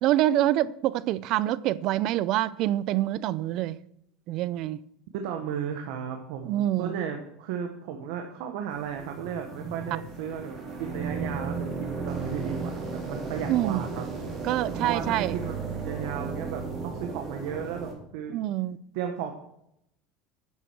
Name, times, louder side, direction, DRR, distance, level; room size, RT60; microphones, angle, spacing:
voice 1, 0.0-3.8 4.3-4.8 6.5-7.0 13.5-13.8 14.4-15.4 18.3-18.8, right 14 dB, 50° right, 0.5 m, -26 dB
voice 2, 5.1-14.0 14.8-18.4 18.9-19.3, right 8 dB, 70° right, 1.3 m, -35 dB
sound 1, 8.7-17.9, right 4 dB, 30° right, 3.4 m, -35 dB
10.0 x 7.4 x 6.3 m
cardioid pair, 150°, 0 cm